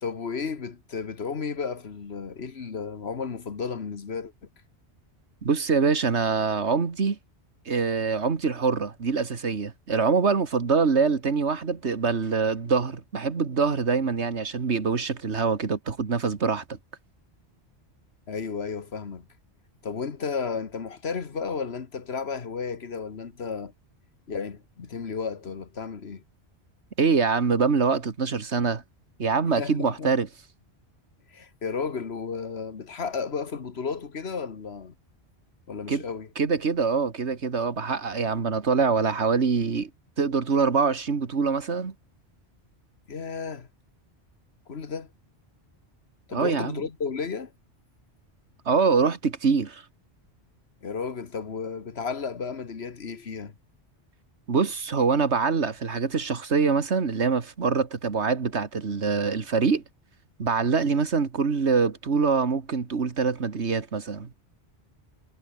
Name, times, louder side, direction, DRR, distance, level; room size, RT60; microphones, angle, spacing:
voice 1, 0.0-4.3 18.3-19.3 19.8-23.7 24.3-26.2 29.5-30.1 31.3-34.9 35.7-36.3 43.1-43.7 44.7-45.1 46.3-47.5 50.8-53.5, left 5 dB, 70° left, 1.7 m, -33 dB
voice 2, 5.4-7.2 7.7-16.8 27.0-28.8 29.2-30.3 35.9-36.0 36.4-39.9 40.2-41.9 46.3-46.8 48.7-49.8 54.5-59.8 60.4-64.3, right 5 dB, 85° right, 2.1 m, -24 dB
omnidirectional pair, 1.1 m